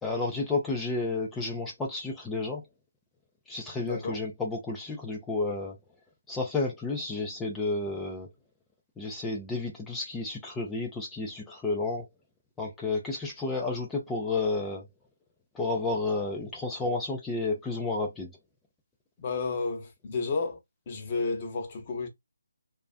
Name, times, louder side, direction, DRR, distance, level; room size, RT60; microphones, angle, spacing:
voice 1, 0.0-2.6 3.5-5.8 6.3-8.3 9.0-12.1 12.6-14.9 15.5-18.3, left 3 dB, 10° left, 0.4 m, -31 dB
voice 2, 3.8-4.2 19.2-20.6 20.9-22.1, left 4 dB, 30° left, 0.8 m, -31 dB
2.4 x 2.3 x 2.3 m
figure-of-eight pair, 150°, 0 cm